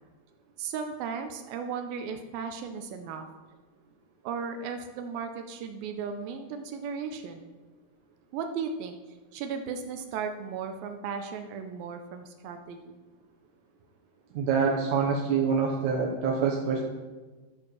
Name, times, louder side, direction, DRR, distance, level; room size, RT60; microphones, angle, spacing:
voice 1, 0.6-3.3 4.2-7.5 8.3-9.0 9.3-12.9, right 6 dB, 85° right, 6 dB, 2.5 m, -36 dB
voice 2, 14.3-16.8, right 5 dB, 65° right, -3 dB, 2.2 m, -26 dB
13.0 x 4.5 x 6.2 m, 1.3 s
omnidirectional pair, 4.1 m